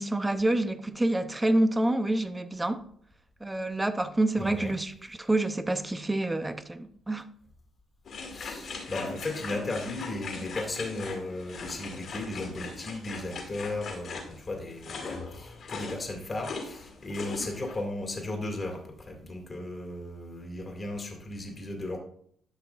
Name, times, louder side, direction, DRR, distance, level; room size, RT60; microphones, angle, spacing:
voice 1, 0.0-2.8 3.4-7.3, right 1 dB, 15° right, 0.7 m, -27 dB
voice 2, 4.4-4.7 8.3-22.0, left 2 dB, 30° left, 2.2 m, -36 dB
sound 1, 8.1-17.8, left 4 dB, 60° left, 2.4 m, -40 dB
12.5 x 5.8 x 2.5 m
cardioid pair, 90°, 0 cm